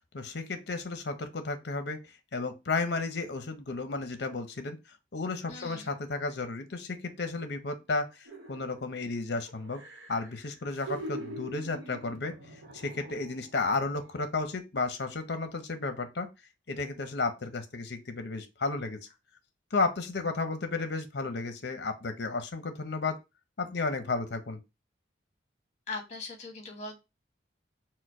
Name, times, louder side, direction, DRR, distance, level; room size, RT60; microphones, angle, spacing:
voice 1, 0.1-2.0 2.3-4.8 5.1-9.8 10.1-12.3 12.7-16.3 16.7-19.0 19.7-23.2 23.6-24.6, left 3 dB, 60° left, 0.7 m, -33 dB
voice 2, 5.5-5.9 25.9-27.0, left 3 dB, 35° left, 1.3 m, -40 dB
sound 1, 8.3-9.1 9.5-13.6 14.0-14.2, right 1 dB, 90° right, 1.0 m, -44 dB
4.5 x 2.2 x 4.7 m
head